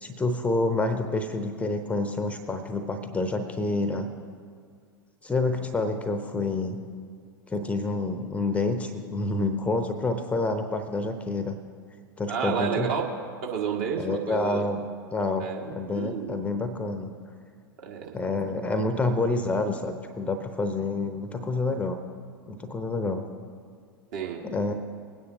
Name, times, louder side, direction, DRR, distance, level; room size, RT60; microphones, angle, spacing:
voice 1, 0.0-4.1 5.2-6.8 7.5-11.6 12.2-13.1 14.0-14.8 15.1-17.1 18.1-22.0 22.5-23.3 24.4-24.7, left 2 dB, 10° left, 8 dB, 0.7 m, -28 dB
voice 2, 12.3-13.0 13.4-14.6 15.4-16.4 17.8-18.1 24.1-24.4, right 7 dB, 50° right, 0 dB, 1.7 m, -30 dB
21.0 x 9.7 x 2.7 m, 2.1 s
figure-of-eight pair, 90°, 12 cm